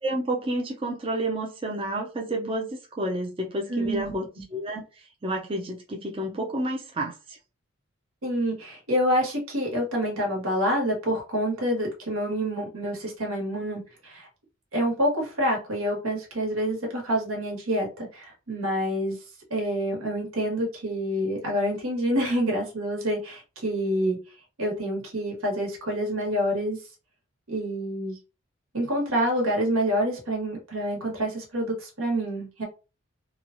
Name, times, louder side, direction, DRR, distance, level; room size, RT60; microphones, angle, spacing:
voice 1, 0.0-4.2 4.5-7.4, right 1 dB, 25° right, 0.4 m, -30 dB
voice 2, 3.7-4.1 8.2-14.3 14.7-19.2 19.5-24.2 24.6-26.8 27.5-28.2 28.7-32.6, equal, 90° right, 1.3 m, -27 dB
3.0 x 2.3 x 2.5 m
head